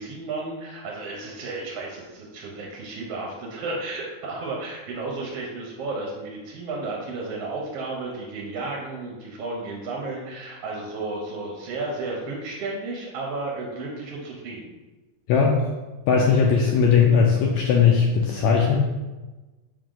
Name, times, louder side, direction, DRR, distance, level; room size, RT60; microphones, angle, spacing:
voice 1, 0.0-14.7, right 3 dB, 75° right, -1 dB, 1.4 m, -33 dB
voice 2, 15.3-15.6 16.1-18.8, left 6 dB, 90° left, -1 dB, 1.6 m, -18 dB
5.0 x 4.9 x 3.8 m, 1.2 s
omnidirectional pair, 3.9 m